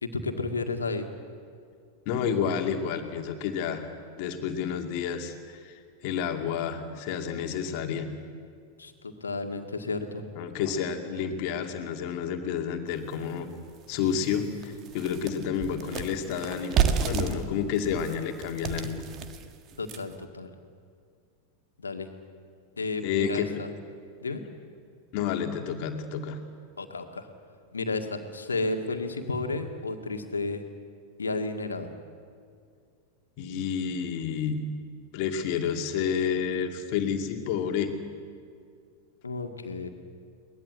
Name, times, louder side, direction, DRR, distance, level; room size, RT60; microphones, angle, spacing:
voice 1, 0.0-1.1 8.8-10.2 19.8-20.5 21.8-22.1 22.8-23.7 24.2-24.4 26.8-27.3 27.7-30.6 31.2-31.9 39.2-39.9, left 3 dB, 75° left, 5 dB, 1.9 m, -32 dB
voice 2, 2.1-3.9 4.2-8.1 10.4-13.5 13.9-19.0 23.0-23.6 25.1-26.4 33.4-34.6 35.1-37.9, left 7 dB, 45° left, 4 dB, 2.3 m, -30 dB
sound 1, 13.1-13.2 13.7-13.8 14.2-20.2, right 7 dB, 35° right, 1.5 m, -31 dB
22.5 x 19.5 x 8.2 m, 2.2 s
figure-of-eight pair, 90°, 0 cm